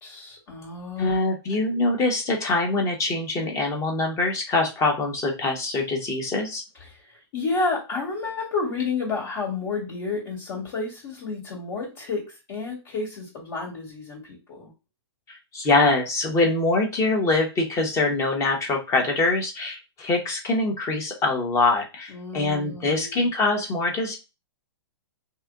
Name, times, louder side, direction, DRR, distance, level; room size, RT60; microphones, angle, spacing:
voice 1, 0.0-1.3 6.9-14.7 22.1-23.3, left 4 dB, 50° left, -3 dB, 2.1 m, -31 dB
voice 2, 1.0-6.6 15.3-24.2, left 2 dB, 20° left, 2 dB, 1.1 m, -24 dB
3.2 x 2.8 x 3.6 m, 0.28 s
hypercardioid pair, 140°, 14 cm